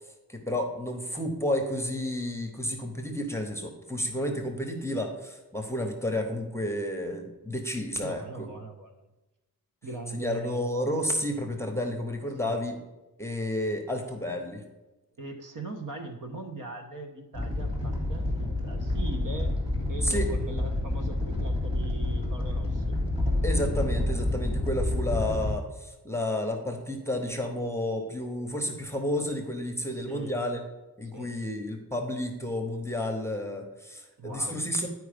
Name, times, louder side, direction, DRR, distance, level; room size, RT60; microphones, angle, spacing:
voice 1, 0.3-8.5 10.1-12.8 13.2-14.6 20.0-20.3 23.4-30.6 31.0-34.9, left 1 dB, 5° left, 3 dB, 0.8 m, -31 dB
voice 2, 8.0-9.1 9.8-10.7 12.4-12.6 15.2-19.6 19.9-23.0 30.1-30.4 31.1-31.3 34.2-34.6, right 2 dB, 60° right, 4 dB, 1.2 m, -40 dB
Animal, 17.3-25.5, left 1 dB, 15° right, 2.0 m, -28 dB
10.0 x 4.7 x 5.0 m, 1.1 s
wide cardioid pair, 170°, 35 cm